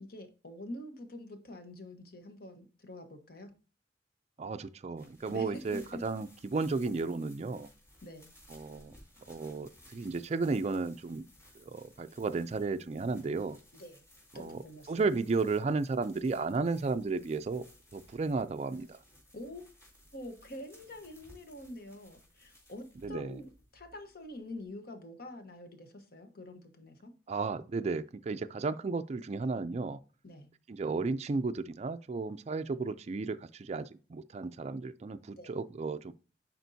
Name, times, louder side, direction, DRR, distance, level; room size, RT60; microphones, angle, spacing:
voice 1, 0.0-3.5 5.3-6.0 8.0-8.3 13.7-14.0 14.3-15.1 19.3-19.6 20.1-27.1 30.2-30.5 35.4-35.5, left 1 dB, 55° left, 1.2 m, -46 dB
voice 2, 4.4-7.7 8.5-8.9 9.3-11.3 11.6-13.6 14.4-14.6 14.9-17.6 17.9-19.0 23.0-23.4 27.3-30.0 30.7-36.1, right 4 dB, 35° right, 0.4 m, -33 dB
sound 1, 5.0-24.7, left 1 dB, 15° left, 3.8 m, -60 dB
10.5 x 4.4 x 2.7 m
head